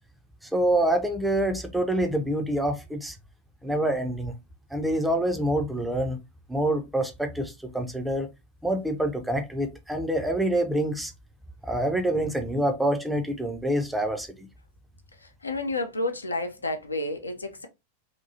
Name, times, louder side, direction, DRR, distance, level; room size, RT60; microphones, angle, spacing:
voice 1, 0.4-3.2 3.6-4.3 4.7-6.2 6.5-8.3 8.6-11.1 11.6-14.5, right 1 dB, 5° right, 0.5 m, -26 dB
voice 2, 15.2-17.7, left 2 dB, 80° left, 0.5 m, -31 dB
2.8 x 2.2 x 2.6 m
figure-of-eight pair, 90°, 0 cm